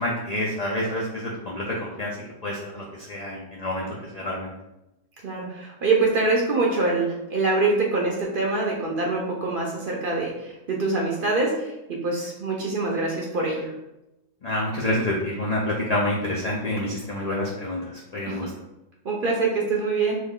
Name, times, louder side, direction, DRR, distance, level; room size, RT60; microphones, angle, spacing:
voice 1, 0.0-2.1 2.4-3.8 4.1-4.5 14.4-17.8 18.1-18.5, left 1 dB, 65° left, -4 dB, 0.4 m, -27 dB
voice 2, 5.2-13.7 18.3-18.4 19.0-20.2, right 3 dB, 55° right, -2 dB, 0.6 m, -24 dB
2.9 x 2.3 x 3.5 m, 0.92 s
omnidirectional pair, 1.3 m